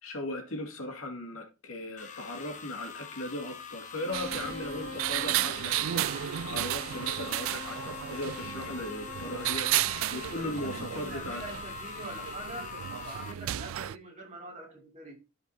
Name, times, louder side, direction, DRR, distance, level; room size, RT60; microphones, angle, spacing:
voice 1, 0.0-11.4, left 1 dB, 80° left, 2.3 m, -38 dB
sound 1, 2.0-13.3, left 6 dB, 35° left, 0.8 m, -43 dB
Bowed string instrument, 3.9-9.9, left 2 dB, 20° left, 2.1 m, -45 dB
sound 2, 4.1-14.0, right 13 dB, 70° right, 0.3 m, -33 dB
voice 2, 10.3-12.7 13.0-15.1, right 2 dB, 35° right, 2.7 m, -44 dB
14.0 x 5.2 x 2.8 m
head